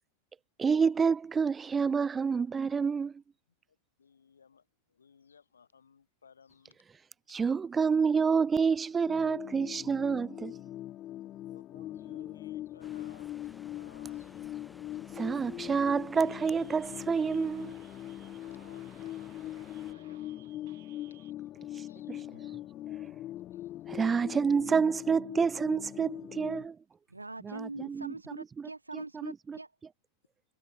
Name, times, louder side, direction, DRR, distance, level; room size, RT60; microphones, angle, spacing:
voice 1, 0.6-3.1 7.3-10.5 15.2-17.7 22.1-22.2 23.9-26.8 27.5-28.1 29.2-29.6, right 5 dB, 15° right, 0.4 m, -28 dB
voice 2, 4.0-6.8 11.4-14.4 18.2-20.6 21.1-22.8 23.2-24.3, left 6 dB, 70° left, 5.2 m, -62 dB
sound 1, 9.1-26.7, left 13 dB, 35° left, 0.6 m, -42 dB
sound 2, 12.8-19.9, left 1 dB, 5° left, 2.1 m, -56 dB
sound 3, 16.1-21.3, right 16 dB, 55° right, 3.1 m, -62 dB
voice 3, 27.1-29.7, right 2 dB, 80° right, 0.7 m, -43 dB
figure-of-eight pair, 90°, 0 cm